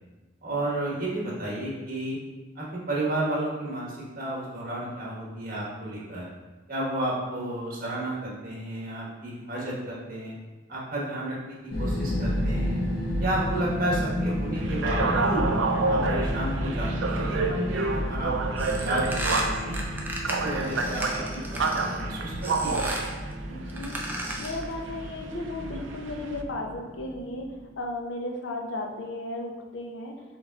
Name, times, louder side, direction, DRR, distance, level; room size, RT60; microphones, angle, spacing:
voice 1, 0.4-2.2 2.5-6.3 6.7-10.4 10.7-12.8 13.2-15.4 15.9-19.8 20.2-22.8, right 1 dB, 50° right, -5 dB, 1.3 m, -32 dB
sound 1, 11.7-27.6, equal, 65° left, 1.0 m, -31 dB
sound 2, 14.5-26.4, right 3 dB, 85° right, 0.4 m, -30 dB
sound 3, 18.6-22.0 22.4-23.1 23.7-24.7, right 1 dB, 10° right, 0.6 m, -34 dB
voice 2, 23.5-30.2, left 1 dB, 85° left, 2 dB, 0.6 m, -35 dB
5.2 x 3.9 x 2.3 m, 1.2 s
head